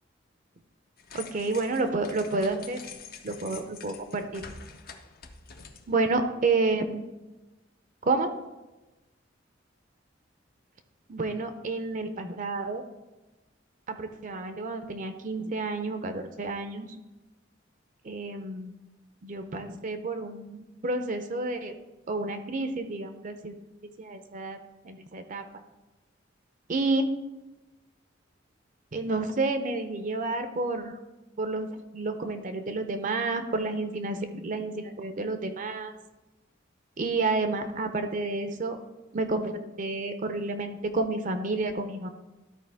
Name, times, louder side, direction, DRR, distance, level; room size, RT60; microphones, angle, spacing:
sound 1, 1.0-6.1, left 6 dB, 50° left, 0.6 m, -46 dB
voice 1, 1.1-2.8 3.2-4.4 5.9-7.0 8.0-8.3 11.1-12.8 13.9-17.0 18.0-18.7 19.2-21.8 22.1-23.6 24.0-24.6 24.8-25.4 26.7-27.1 28.9-31.0 31.4-35.9 37.0-38.8 39.1-42.1, right 3 dB, 40° right, 8 dB, 0.6 m, -30 dB
12.5 x 4.5 x 3.4 m, 1.1 s
head